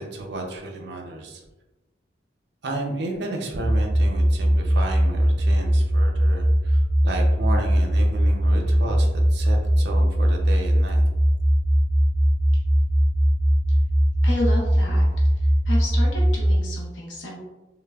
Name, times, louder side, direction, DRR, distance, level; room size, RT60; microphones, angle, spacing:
voice 1, 0.0-1.4 2.6-11.0, right 2 dB, 65° right, 1 dB, 0.5 m, -33 dB
sound 1, 3.6-16.6, equal, 10° right, 0.4 m, -20 dB
voice 2, 14.2-15.1 15.4-17.4, left 1 dB, 75° left, -2 dB, 0.6 m, -31 dB
3.2 x 2.1 x 2.3 m, 1.1 s
head